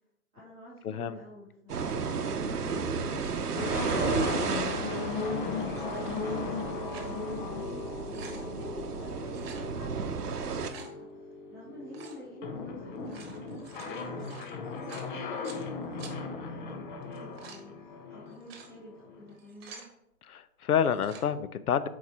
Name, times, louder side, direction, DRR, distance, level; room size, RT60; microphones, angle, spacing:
voice 1, 0.3-19.8, right 1 dB, ahead, -24 dB, 0.3 m, -49 dB
voice 2, 0.8-1.2 20.3-21.9, left 8 dB, 75° left, 13 dB, 0.6 m, -28 dB
sound 1, 1.7-2.1 3.1-4.0 4.3-4.7 5.6-5.9 6.6-7.2 7.6-7.7 7.9-8.5 9.3-9.7 10.3-10.9 11.9-12.2 12.9-15.6 16.0-16.1 17.0-17.6 18.3-18.7 19.3-19.9 20.8-21.3, right 5 dB, 40° right, 1.3 m, -49 dB
sound 2, 1.7-10.7, right 5 dB, 85° right, 0.7 m, -33 dB
sound 3, 3.5-19.3, left 4 dB, 35° left, 0.7 m, -37 dB
7.0 x 4.6 x 2.9 m, 0.81 s
figure-of-eight pair, 125°, 45 cm